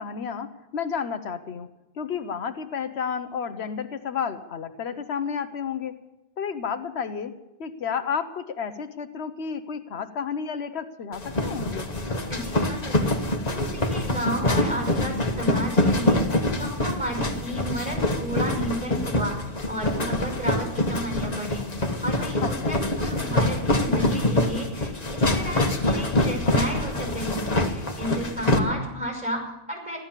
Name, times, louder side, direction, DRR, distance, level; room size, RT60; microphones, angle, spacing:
voice 1, 0.0-1.7 2.0-6.0 6.4-11.9 22.4-22.8 28.5-28.7, left 6 dB, 85° left, 9 dB, 1.2 m, -31 dB
sound 1, 11.1-28.6, left 1 dB, 40° left, 1.5 m, -25 dB
voice 2, 12.3-21.7 22.0-30.0, right 1 dB, 5° right, 0 dB, 5.8 m, -33 dB
15.5 x 12.5 x 7.4 m, 0.95 s
omnidirectional pair, 1.1 m